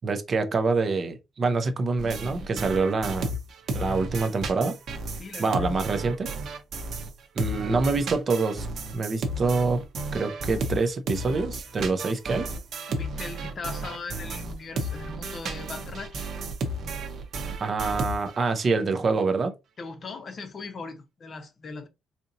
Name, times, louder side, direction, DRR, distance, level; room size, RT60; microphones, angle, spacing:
voice 1, 0.0-3.4 3.7-4.8 5.4-6.3 7.4-8.7 8.9-9.8 10.1-12.5 17.6-19.5, right 4 dB, 30° right, 0.5 m, -26 dB
sound 1, 2.0-7.1 7.4-18.5, right 2 dB, 50° right, 0.8 m, -33 dB
voice 2, 5.2-5.7 12.9-16.3 19.8-21.9, left 4 dB, 35° left, 0.7 m, -39 dB
4.1 x 2.8 x 2.6 m
cardioid pair, 165°, 0 cm